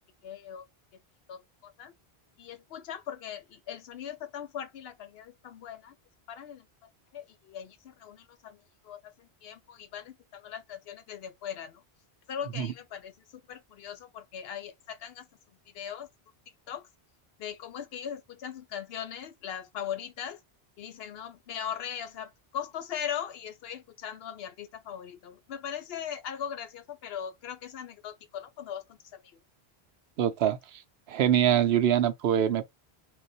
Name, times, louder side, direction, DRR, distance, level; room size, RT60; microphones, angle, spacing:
voice 1, 0.2-0.7 1.3-1.9 2.4-5.9 6.3-6.6 7.1-11.8 12.3-13.2 13.5-15.3 15.7-16.1 16.7-16.9 17.4-20.4 20.8-29.4, left 8 dB, 70° left, 0.8 m, -40 dB
voice 2, 30.2-30.8 31.1-32.7, right 10 dB, 75° right, 0.8 m, -24 dB
2.4 x 2.2 x 3.9 m
omnidirectional pair, 1.1 m